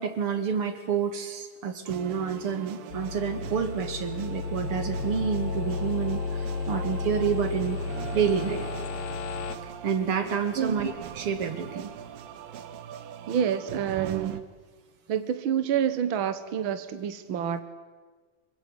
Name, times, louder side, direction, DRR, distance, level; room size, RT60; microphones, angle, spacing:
voice 1, 0.0-7.8 8.1-8.7 9.6-11.9, right 7 dB, 45° right, 9 dB, 2.9 m, -29 dB
sound 1, 1.9-14.4, right 10 dB, 90° right, 3.1 m, -41 dB
sound 2, 2.9-9.6, left 4 dB, 80° left, 3.0 m, -33 dB
voice 2, 13.3-14.4 15.1-17.6, right 8 dB, 65° right, 11 dB, 1.2 m, -28 dB
26.0 x 23.0 x 9.8 m, 1.4 s
omnidirectional pair, 3.9 m